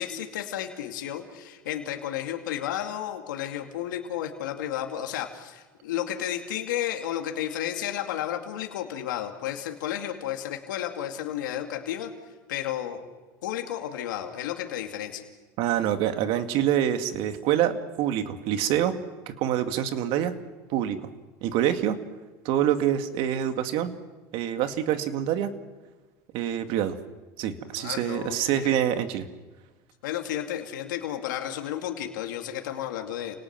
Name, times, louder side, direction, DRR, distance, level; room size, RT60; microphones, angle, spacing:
voice 1, 0.0-12.1 12.5-13.0 13.4-15.2 27.7-28.9 30.0-33.4, left 11 dB, 90° left, 3 dB, 2.4 m, -32 dB
voice 2, 15.6-18.9 19.3-20.3 20.7-21.0 21.4-22.0 22.4-23.9 24.3-25.5 26.3-27.0 27.4-29.3, right 11 dB, 60° right, 7 dB, 2.2 m, -26 dB
29.5 x 18.5 x 6.0 m, 1.2 s
supercardioid pair, 105°, 10 cm